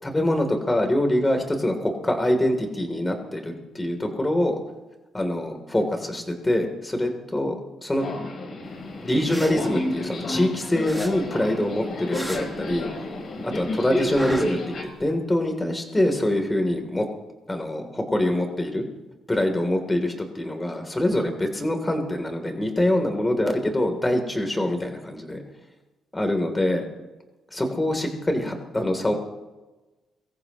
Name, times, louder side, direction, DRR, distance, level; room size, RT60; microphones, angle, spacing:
voice 1, 0.0-4.5 5.1-7.6 7.8-8.0 9.0-12.9 13.4-17.1 17.5-18.8 19.3-25.4 26.1-26.8 27.5-29.1, left 1 dB, 15° left, 4 dB, 3.1 m, -24 dB
Subway metro underground, 8.0-14.8, left 1 dB, 55° left, 3.7 m, -31 dB
sound 1, 9.1-10.5 10.8-13.2 13.5-15.1, equal, ahead, 1.6 m, -37 dB
23.5 x 14.5 x 3.0 m, 1.1 s
cardioid pair, 90°, 0 cm